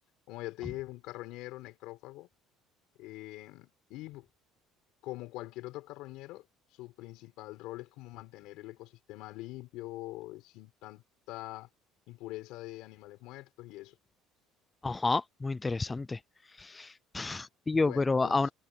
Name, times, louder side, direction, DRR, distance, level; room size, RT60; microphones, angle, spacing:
voice 1, 0.3-2.3 3.0-4.3 5.0-6.5 6.7-11.7 12.1-14.0 17.7-18.5, left 18 dB, 70° left, 4.3 m, -44 dB
voice 2, 14.8-16.2 16.6-18.5, left 3 dB, 15° left, 0.4 m, -30 dB
cardioid pair, 150°, 0 cm